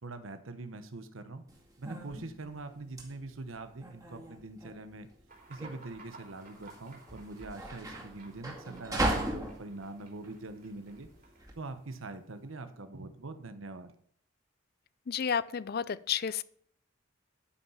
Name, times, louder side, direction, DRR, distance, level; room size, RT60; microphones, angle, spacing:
voice 1, 0.0-1.4 1.8-5.1 5.5-11.1 11.6-13.9, right 2 dB, 75° right, 9 dB, 1.0 m, -43 dB
sound 1, 1.5-11.5, right 1 dB, 15° right, 2.1 m, -38 dB
sound 2, 5.3-12.8, right 3 dB, 45° right, 3.9 m, -57 dB
voice 2, 15.1-16.4, left 7 dB, 50° left, 18 dB, 0.4 m, -31 dB
12.5 x 5.6 x 5.7 m, 0.63 s
head